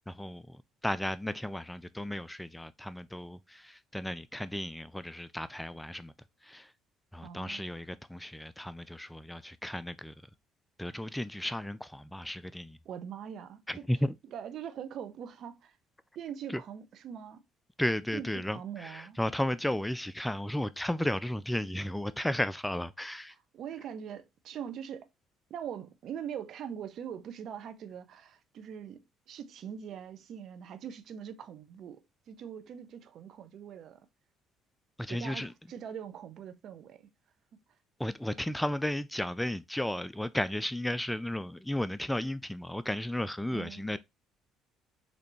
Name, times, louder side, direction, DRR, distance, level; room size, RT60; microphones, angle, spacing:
voice 1, 0.0-6.1 6.4-6.7 7.1-10.1 10.8-12.8 13.7-14.1 16.5-16.6 17.8-23.3 35.0-35.5 38.0-44.0, left 1 dB, 5° left, 0.3 m, -34 dB
voice 2, 7.2-7.7 12.8-13.8 14.3-15.8 16.2-17.4 18.1-19.2 23.5-25.1 25.5-34.0 35.1-37.1 43.5-43.8, right 8 dB, 60° right, 0.6 m, -42 dB
4.0 x 3.2 x 3.0 m
hypercardioid pair, 60°, 0 cm